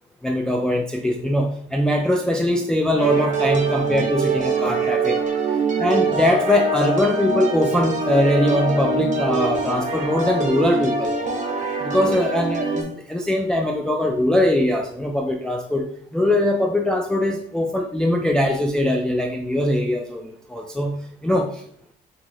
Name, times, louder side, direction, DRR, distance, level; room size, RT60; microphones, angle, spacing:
voice 1, 0.2-5.2 5.8-11.1 11.8-20.9 21.2-21.5, left 1 dB, 5° left, 2 dB, 0.4 m, -21 dB
sound 1, 3.0-12.8, right 3 dB, 40° right, 0.9 m, -24 dB
2.9 x 2.8 x 3.8 m, 0.62 s
cardioid pair, 90°, 20 cm